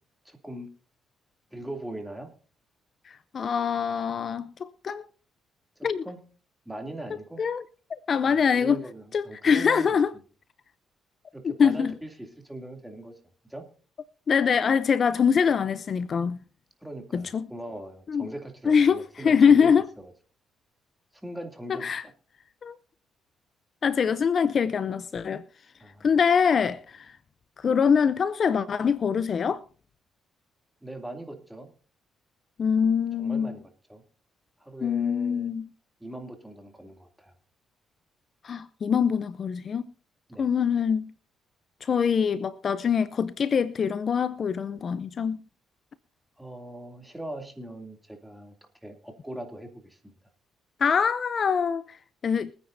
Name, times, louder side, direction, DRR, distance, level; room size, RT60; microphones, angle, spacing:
voice 1, 0.2-0.7 1.5-2.3 5.8-6.2 6.6-7.4 8.2-10.0 11.3-13.2 13.5-13.7 16.8-20.1 21.1-22.1 25.8-26.1 30.8-31.7 33.2-34.0 34.6-35.6 36.0-37.3 40.3-40.5 46.4-48.5 48.8-50.1, right 1 dB, 5° right, 2.6 m, -40 dB
voice 2, 3.3-5.1 5.8-6.0 7.4-7.6 7.9-8.8 9.1-10.1 11.6-11.9 14.3-16.4 17.1-17.5 18.1-18.3 18.7-19.8 21.7-22.0 22.6-22.7 23.8-25.4 26.0-27.1 27.6-29.6 32.6-33.6 34.8-35.7 38.4-39.8 40.4-41.1 41.8-45.4 50.8-51.8 52.2-52.5, left 6 dB, 50° left, 0.6 m, -24 dB
24.0 x 9.6 x 2.6 m
cardioid pair, 90°, 0 cm